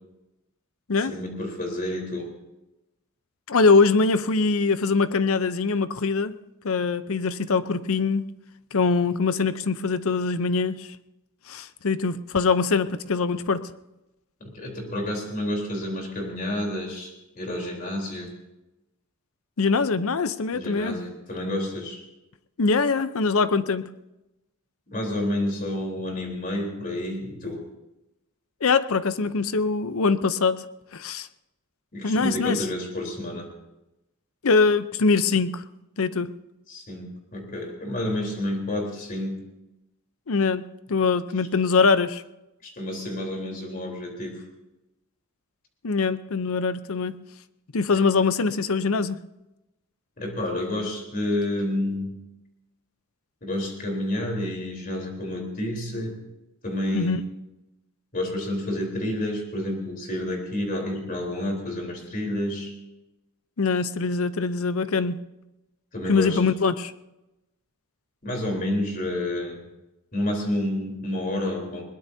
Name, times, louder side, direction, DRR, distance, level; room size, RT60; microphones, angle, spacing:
voice 1, 1.1-2.3 14.4-18.3 20.5-22.0 24.9-27.6 31.9-33.5 36.7-39.4 42.6-44.4 47.9-48.0 50.2-52.1 53.4-56.2 56.6-57.2 58.1-62.7 65.9-66.4 68.2-69.6 70.1-71.8, left 1 dB, 40° left, 0 dB, 3.9 m, -29 dB
voice 2, 3.5-6.3 6.6-8.3 8.7-10.9 11.5-13.7 19.6-21.0 22.6-23.8 28.6-30.6 30.9-31.3 32.0-32.6 34.4-35.6 36.0-36.3 40.3-42.2 45.8-47.2 47.7-49.2 56.9-57.2 63.6-65.2 66.1-66.9, left 4 dB, 70° left, 13 dB, 0.7 m, -23 dB
21.5 x 20.0 x 2.8 m, 0.96 s
head